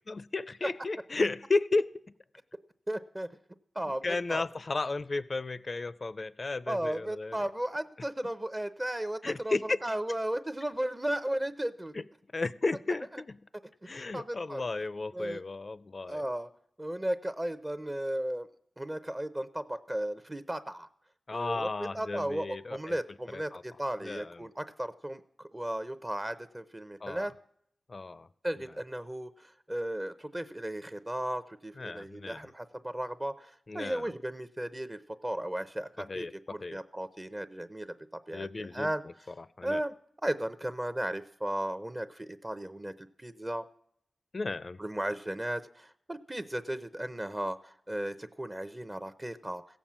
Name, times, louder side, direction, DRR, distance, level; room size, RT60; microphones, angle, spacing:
voice 1, 0.1-2.1 4.0-7.4 9.2-9.8 11.9-12.1 12.3-13.4 13.8-16.2 21.3-23.0 23.3-23.6 24.0-24.5 27.0-27.3 27.9-28.3 31.8-32.4 33.7-34.1 36.0-36.8 38.3-39.8 44.3-44.8, left 3 dB, 45° left, 17 dB, 0.5 m, -34 dB
voice 2, 2.9-3.3 3.7-4.4 6.7-11.9 14.1-14.6 15.1-15.4 16.1-16.5 16.8-18.5 18.8-20.9 21.3-21.7 21.9-27.3 28.4-39.0 39.6-39.9 40.2-43.6 44.8-49.6, right 1 dB, 20° right, 12 dB, 0.7 m, -35 dB
16.0 x 7.2 x 7.4 m, 0.67 s
wide cardioid pair, 80°, 0 cm